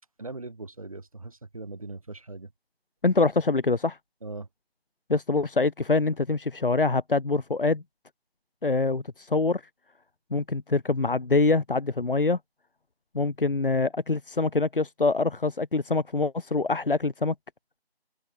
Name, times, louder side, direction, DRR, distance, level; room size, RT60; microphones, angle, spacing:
voice 1, 0.2-2.5 4.2-4.5, right 3 dB, 35° right, 2.4 m, -40 dB
voice 2, 3.0-4.0 5.1-7.8 8.6-9.6 10.3-12.4 13.1-17.3, left 3 dB, 55° left, 0.8 m, -25 dB
figure-of-eight pair, 170°, 32 cm